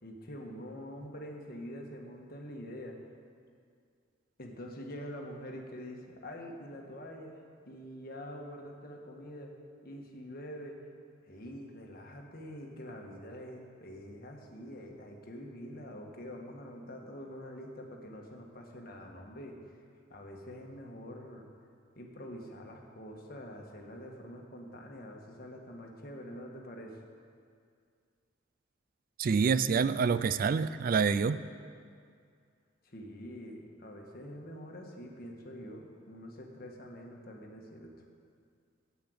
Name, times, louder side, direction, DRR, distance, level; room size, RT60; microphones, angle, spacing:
voice 1, 0.0-3.0 4.4-7.4 7.6-9.5 9.8-10.8 11.2-19.8 20.1-21.5 21.9-27.0 32.8-38.0, equal, 50° left, 1 dB, 1.5 m, -45 dB
voice 2, 29.2-31.4, right 5 dB, 45° right, 14 dB, 0.3 m, -27 dB
10.0 x 8.5 x 7.9 m, 2.2 s
head